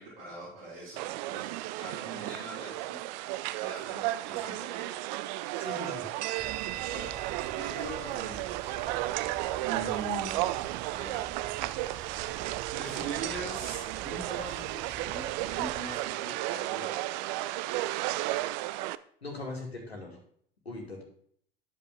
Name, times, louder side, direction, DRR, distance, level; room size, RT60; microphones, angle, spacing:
voice 1, 0.0-1.5 1.8-3.2 3.6-5.0 5.4-5.8 6.9-7.2 7.5-8.8 9.6-10.7 10.9-11.4 12.7-17.2, right 2 dB, 65° right, -8 dB, 3.8 m, -42 dB
sound 1, 1.0-19.0, right 16 dB, 50° right, 0.4 m, -33 dB
voice 2, 5.6-6.1 6.6-6.8 19.2-20.2 20.7-21.0, left 2 dB, 85° left, 1 dB, 2.2 m, -40 dB
Telephone, 6.4-16.1, right 7 dB, 25° right, 1.1 m, -47 dB
10.5 x 6.8 x 3.6 m, 0.62 s
figure-of-eight pair, 75°, 31 cm